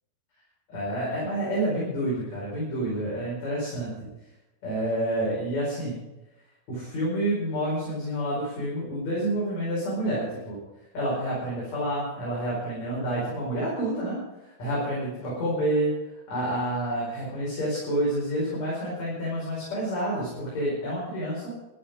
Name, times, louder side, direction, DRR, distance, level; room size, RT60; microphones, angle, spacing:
voice 1, 0.7-3.9 4.6-6.0 6.7-10.6 10.9-21.5, right 1 dB, 45° left, -6 dB, 6.4 m, -29 dB
14.5 x 12.5 x 5.2 m, 1.0 s
omnidirectional pair, 4.4 m